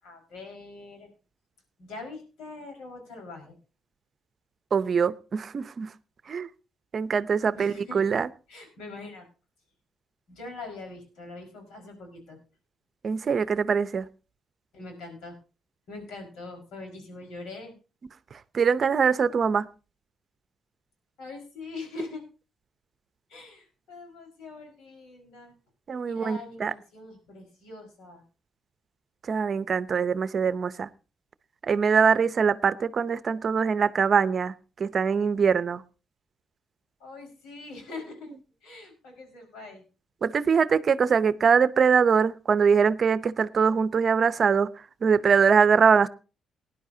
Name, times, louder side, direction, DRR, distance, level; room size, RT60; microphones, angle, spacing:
voice 1, 0.0-1.1 1.8-3.6 7.5-8.1 8.5-9.2 10.3-12.4 14.7-15.4 15.9-17.7 21.2-22.2 23.3-25.5 26.0-28.2 37.0-38.3 38.6-39.8, left 3 dB, 85° left, 5.0 m, -42 dB
voice 2, 4.7-5.9 6.3-6.5 6.9-8.3 13.0-14.1 18.5-19.7 25.9-26.7 29.3-30.9 31.6-35.8 40.2-44.7 45.0-46.1, right 6 dB, 45° right, 0.7 m, -23 dB
19.0 x 11.0 x 2.8 m
cardioid pair, 90°, 0 cm